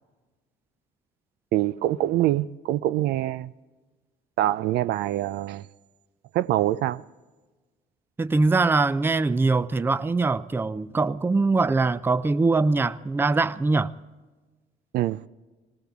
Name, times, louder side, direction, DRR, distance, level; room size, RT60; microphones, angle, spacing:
voice 1, 1.5-3.5 4.4-5.6 6.3-7.0 14.9-15.2, right 14 dB, 75° right, 0.4 m, -24 dB
voice 2, 8.2-13.9, right 3 dB, 15° right, 0.4 m, -22 dB
20.0 x 19.0 x 3.6 m
cardioid pair, 110°, 17 cm